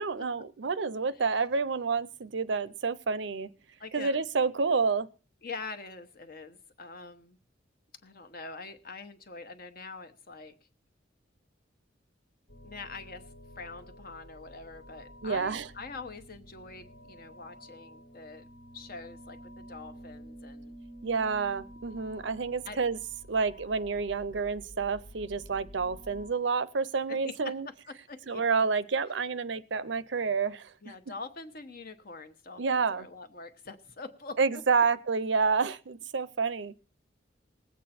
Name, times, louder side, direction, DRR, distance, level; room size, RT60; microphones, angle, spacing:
voice 1, 0.0-3.5 3.9-5.1 15.2-15.7 21.0-23.0 23.3-27.7 28.3-30.7 32.6-33.1 34.4-36.7, right 4 dB, 70° right, 0.6 m, -29 dB
voice 2, 3.8-4.2 5.4-7.4 8.0-10.5 12.6-13.3 13.6-18.5 18.7-20.8 22.6-22.8 27.1-28.4 30.8-34.6, left 4 dB, 50° left, 1.1 m, -44 dB
sound 1, 12.5-26.3, equal, 75° left, 1.8 m, -50 dB
19.5 x 8.4 x 4.3 m
head